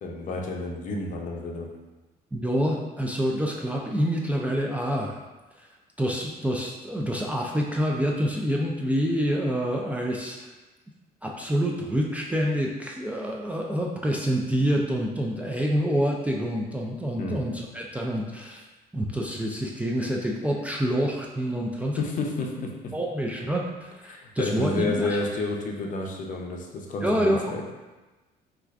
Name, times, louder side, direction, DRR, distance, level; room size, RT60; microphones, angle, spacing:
voice 1, 0.0-1.7 17.2-17.4 22.0-22.9 24.1-27.7, left 3 dB, 50° left, 1 dB, 0.6 m, -30 dB
voice 2, 2.3-5.2 6.0-10.5 11.2-18.7 18.9-22.0 22.9-25.3 27.0-27.4, equal, 10° right, -2 dB, 0.3 m, -27 dB
4.3 x 2.4 x 2.4 m, 1.2 s
cardioid pair, 110°, 17 cm